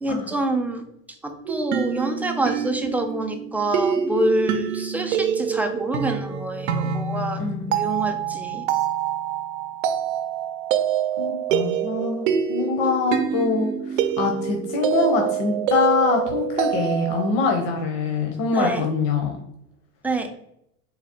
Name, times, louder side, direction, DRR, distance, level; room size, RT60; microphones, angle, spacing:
voice 1, 0.0-0.8 1.2-7.4 7.7-8.6 18.5-18.9 20.0-20.3, right 1 dB, 5° right, 4 dB, 0.4 m, -26 dB
sound 1, 1.5-17.3, right 8 dB, 85° right, 0.6 m, -26 dB
voice 2, 11.2-19.3, left 4 dB, 65° left, 2 dB, 0.9 m, -24 dB
4.0 x 2.0 x 4.3 m, 0.77 s
supercardioid pair, 105°, 38 cm